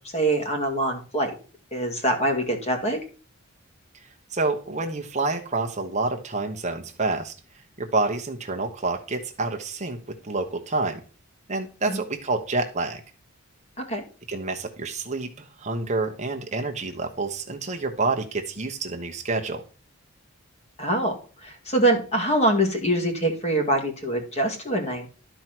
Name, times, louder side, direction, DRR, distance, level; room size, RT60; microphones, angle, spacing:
voice 1, 0.1-1.3 1.7-3.0 11.9-12.0 13.8-14.0 20.8-21.2 21.4-25.1, right 1 dB, 30° left, 3 dB, 2.1 m, -24 dB
voice 2, 4.3-7.3 7.8-11.0 11.5-13.0 14.3-15.3 15.6-19.6, right 3 dB, 30° right, 3 dB, 1.0 m, -28 dB
12.0 x 4.6 x 5.9 m, 0.37 s
head